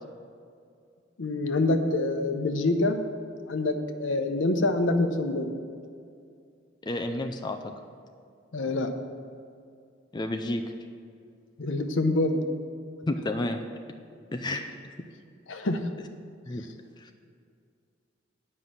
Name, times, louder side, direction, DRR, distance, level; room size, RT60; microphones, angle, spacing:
voice 1, 1.2-3.0 3.5-5.5 8.5-8.9 11.6-12.4 15.5-15.8, left 2 dB, 75° left, 6 dB, 0.8 m, -26 dB
voice 2, 6.8-7.7 10.1-10.6 13.1-13.6 14.3-15.1 16.5-16.6 17.0-17.1, left 1 dB, 20° left, 5 dB, 0.4 m, -31 dB
9.7 x 5.5 x 7.5 m, 2.3 s
head